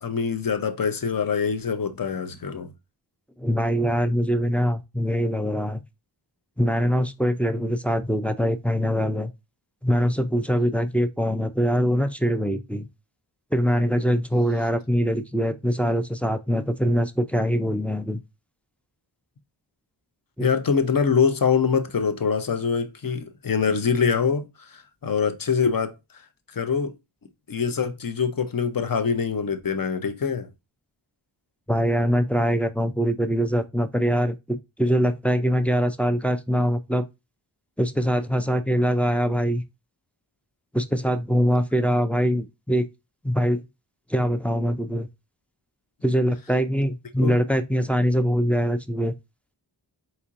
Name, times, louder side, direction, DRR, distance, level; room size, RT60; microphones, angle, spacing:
voice 1, 0.0-2.7 20.4-25.9 26.5-26.9 27.5-30.5 47.2-47.4, left 6 dB, 45° left, 0.7 m, -24 dB
voice 2, 3.4-5.8 6.6-9.3 9.8-12.9 13.5-18.2 20.4-20.5 31.7-37.0 37.8-39.6 40.7-42.9 43.2-43.6 44.1-45.1 46.0-49.1, equal, 5° left, 0.3 m, -23 dB
4.3 x 2.9 x 2.5 m
wide cardioid pair, 40°, 47 cm